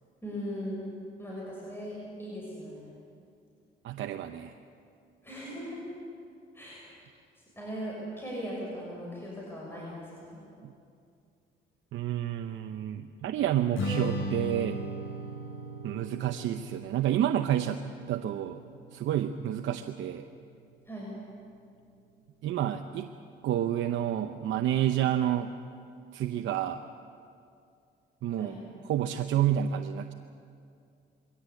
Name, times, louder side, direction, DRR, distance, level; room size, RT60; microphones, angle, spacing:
voice 1, 0.2-0.9 1.2-2.9 5.2-5.8 6.5-6.9 7.6-10.4 20.9-21.1 28.4-28.6, equal, 10° left, -4 dB, 6.5 m, -39 dB
voice 2, 3.8-4.5 10.6-10.7 11.9-14.8 15.8-18.6 18.9-20.3 22.4-23.1 23.4-25.5 26.1-26.8 28.2-28.5 28.9-30.1, right 11 dB, 75° right, 6 dB, 0.8 m, -29 dB
Strum, 13.7-20.0, equal, 80° left, 7.7 m, -37 dB
22.0 x 17.0 x 8.5 m, 2.4 s
cardioid pair, 90°, 20 cm